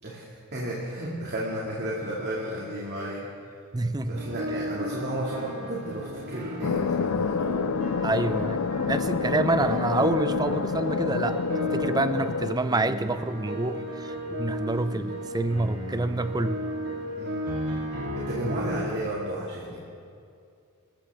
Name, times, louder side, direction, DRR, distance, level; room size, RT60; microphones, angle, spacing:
voice 1, 0.0-3.3 4.1-7.6 17.2-17.5 18.1-19.8, right 1 dB, 45° right, -5 dB, 2.3 m, -33 dB
voice 2, 3.7-4.3 8.0-11.4 11.7-16.6 18.4-18.5, right 2 dB, 15° right, 11 dB, 0.5 m, -27 dB
sound 1, 4.2-19.0, equal, 70° right, 3.3 m, -34 dB
sound 2, 6.6-12.5, left 6 dB, 70° left, 0.4 m, -28 dB
27.5 x 14.5 x 3.6 m, 2.4 s
head